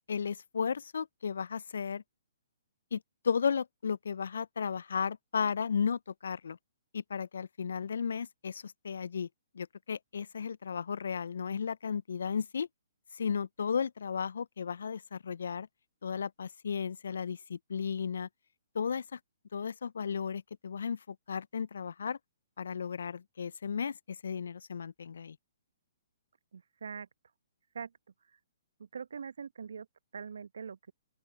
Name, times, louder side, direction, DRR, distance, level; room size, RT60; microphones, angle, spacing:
voice 1, 0.1-2.0 2.9-6.6 6.9-9.3 9.5-12.7 13.1-15.7 16.0-18.3 18.7-19.2 19.5-22.2 22.6-25.4, left 6 dB, 65° left, 0.4 m, -34 dB
voice 2, 26.5-27.1 27.7-27.9 28.8-29.9 30.1-30.9, right 6 dB, 70° right, 1.1 m, -42 dB
open air
figure-of-eight pair, 125°, 0 cm